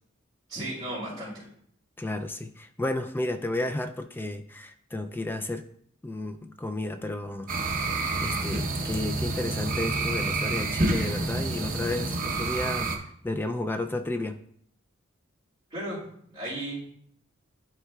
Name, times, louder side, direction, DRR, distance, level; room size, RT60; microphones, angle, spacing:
voice 1, 0.5-1.5 15.7-16.1 16.3-16.9, right 1 dB, 20° right, -11 dB, 2.7 m, -35 dB
voice 2, 2.0-5.6 6.0-7.5 8.2-12.9 13.2-14.4, left 2 dB, 10° left, 7 dB, 0.3 m, -32 dB
sound 1, 7.5-13.0, right 3 dB, 45° right, 0.9 m, -28 dB
11.5 x 4.4 x 2.3 m, 0.66 s
head